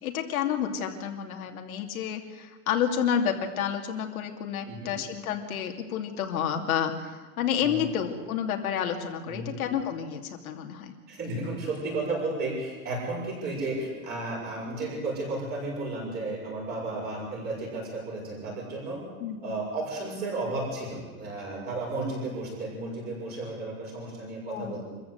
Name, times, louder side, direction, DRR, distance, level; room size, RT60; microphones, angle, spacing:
voice 1, 0.0-10.9 19.2-19.5 24.5-24.8, left 8 dB, 70° left, 3 dB, 2.7 m, -30 dB
voice 2, 11.1-19.0 19.4-24.9, right 2 dB, 20° right, -1 dB, 6.4 m, -33 dB
25.0 x 15.0 x 8.1 m, 1.4 s
supercardioid pair, 175°, 44 cm